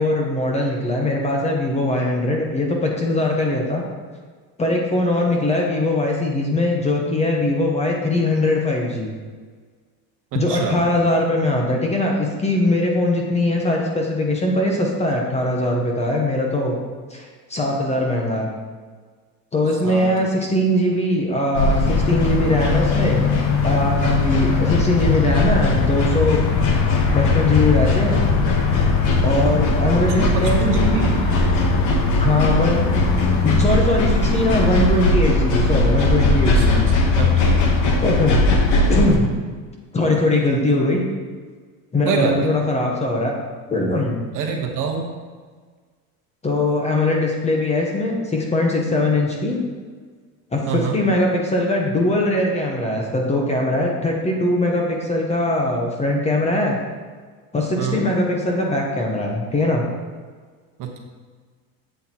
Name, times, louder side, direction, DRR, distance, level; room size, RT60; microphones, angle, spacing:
voice 1, 0.0-3.8 4.6-9.1 10.3-16.8 17.1-18.5 19.5-23.2 23.6-26.5 27.1-28.2 29.2-31.0 32.2-32.8 33.4-36.8 38.0-38.5 38.9-39.3 39.9-41.0 41.9-43.3 43.7-44.2 46.4-49.6 50.5-56.8 57.5-59.8, left 1 dB, 15° left, 0 dB, 0.8 m, -21 dB
voice 2, 10.3-10.8 19.8-20.1 30.0-31.1 36.6-37.8 42.1-42.5 44.3-45.1 50.7-51.0 57.8-58.0 60.8-61.0, right 6 dB, 50° right, 2 dB, 1.1 m, -26 dB
sound 1, 21.5-39.2, left 3 dB, 45° left, 1.1 m, -18 dB
7.8 x 6.4 x 2.9 m, 1.5 s
cardioid pair, 145°, 42 cm